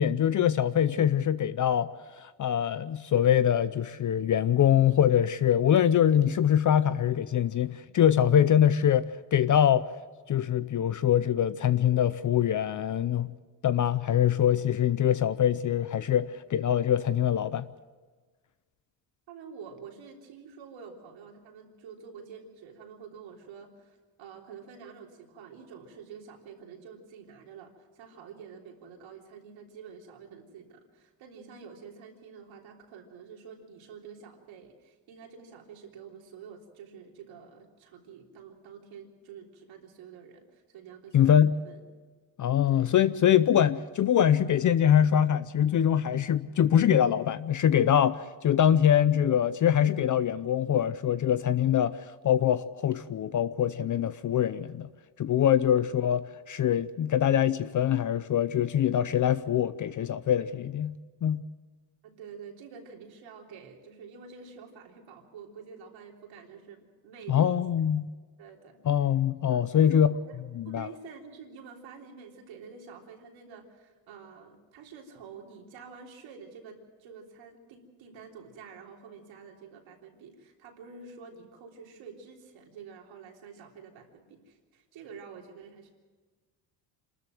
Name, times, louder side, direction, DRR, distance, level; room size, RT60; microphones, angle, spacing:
voice 1, 0.0-1.9 2.2-9.9 10.3-13.3 13.6-17.7 41.1-41.5 42.4-52.0 52.2-54.9 55.2-60.9 61.2-61.4 67.3-68.1 68.9-70.1 70.6-70.9, left 9 dB, 40° left, 0.6 m, -24 dB
voice 2, 19.3-41.8 42.7-43.1 62.0-67.6 68.4-69.1 69.5-70.4 70.7-85.9, right 6 dB, 80° right, 3.6 m, -48 dB
27.0 x 13.5 x 7.6 m
cardioid pair, 105°, 46 cm